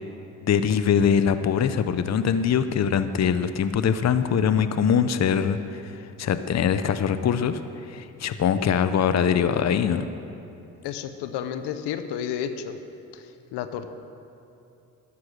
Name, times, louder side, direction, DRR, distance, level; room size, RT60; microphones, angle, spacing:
voice 1, 0.4-5.8 6.2-7.6 7.9-10.1, left 7 dB, 40° left, 11 dB, 0.7 m, -22 dB
voice 2, 10.8-12.8 13.1-13.2 13.5-14.0, left 9 dB, 80° left, 9 dB, 0.9 m, -31 dB
13.0 x 9.6 x 6.3 m, 2.7 s
supercardioid pair, 55°, 40 cm